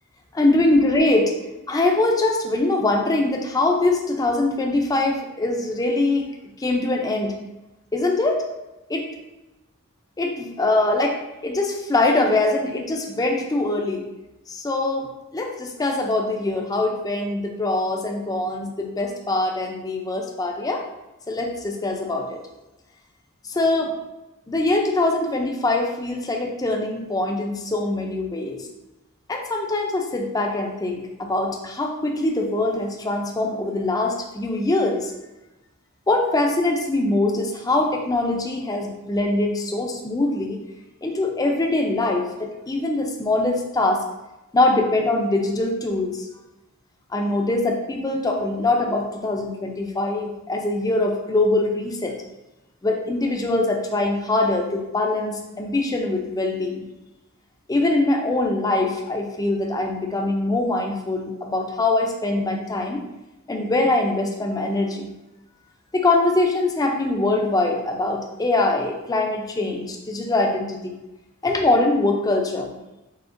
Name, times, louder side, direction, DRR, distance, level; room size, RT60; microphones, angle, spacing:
voice 1, 0.3-1.3 1.7-6.3 6.6-7.3 7.9-8.5 8.9-9.1 10.2-14.0 14.5-15.1 15.3-20.8 21.3-22.4 23.5-23.9 24.5-28.6 29.3-35.1 36.1-40.6 41.0-44.0 44.5-46.2 47.1-52.2 52.8-56.9 57.7-63.0 63.5-65.1 65.9-70.9 71.4-72.7, left 2 dB, 15° left, 2 dB, 0.4 m, -23 dB
4.8 x 3.5 x 2.5 m, 1.0 s
head